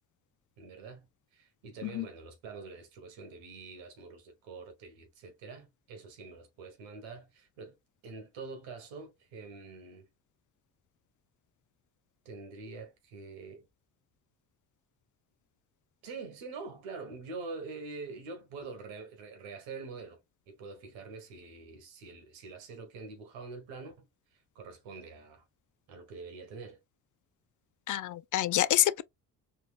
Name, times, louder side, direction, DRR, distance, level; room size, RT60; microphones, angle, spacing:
voice 1, 0.6-7.7 8.0-10.1 12.2-13.7 16.0-20.2 20.5-25.4 25.9-26.8, right 4 dB, 85° right, 1.4 m, -45 dB
voice 2, 27.9-29.0, left 13 dB, 45° left, 0.4 m, -27 dB
4.3 x 2.6 x 2.4 m
hypercardioid pair, 50°, 44 cm